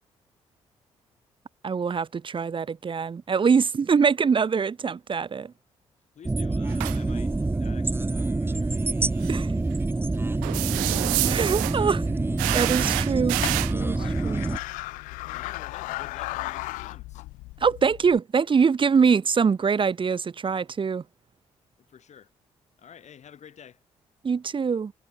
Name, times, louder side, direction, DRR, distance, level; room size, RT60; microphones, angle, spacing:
voice 1, 1.6-5.5 9.3-9.5 11.2-12.1 12.5-13.4 13.7-14.5 17.6-21.0 24.2-24.9, right 6 dB, 40° right, 1.0 m, -24 dB
voice 2, 6.2-9.6 9.9-10.6 15.3-17.2 21.9-22.3 22.8-23.8, left 8 dB, 60° left, 5.5 m, -50 dB
sound 1, 6.2-14.6, right 2 dB, 15° right, 0.8 m, -26 dB
sound 2, 6.7-7.0 9.2-9.3 10.4-11.8 12.4-13.7, right 29 dB, 85° right, 1.2 m, -27 dB
sound 3, 11.9-18.2, left 20 dB, 80° left, 0.5 m, -37 dB
hypercardioid pair, 45°, 13 cm